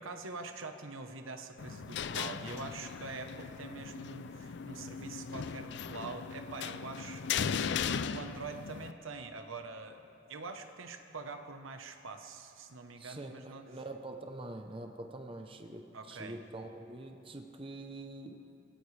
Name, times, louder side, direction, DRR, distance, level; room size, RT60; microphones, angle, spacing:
voice 1, 0.0-10.0 10.3-13.6 15.9-16.4, right 3 dB, 85° right, 6 dB, 1.1 m, -45 dB
sound 1, 1.6-8.9, left 7 dB, 55° left, 0.4 m, -38 dB
voice 2, 13.0-18.4, right 2 dB, 25° right, 4 dB, 0.7 m, -45 dB
24.5 x 17.0 x 3.3 m, 2.9 s
head